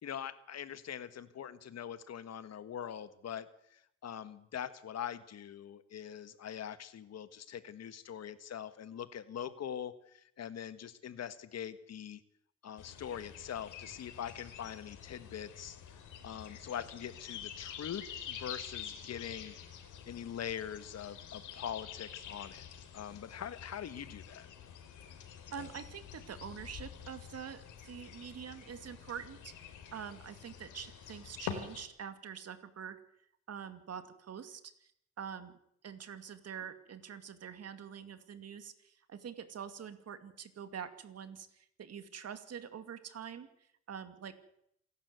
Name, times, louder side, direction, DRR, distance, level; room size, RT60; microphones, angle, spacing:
voice 1, 0.0-12.2 12.6-19.5 20.1-22.7 22.9-24.5, left 9 dB, 60° left, 13 dB, 1.5 m, -43 dB
sound 1, 12.8-31.9, left 8 dB, 85° left, 3.7 m, -48 dB
voice 2, 25.5-33.0 33.5-34.9 35.2-35.5 35.8-44.4, right 7 dB, 55° right, 10 dB, 2.4 m, -45 dB
27.5 x 12.0 x 8.1 m, 0.72 s
cardioid pair, 90°, 30 cm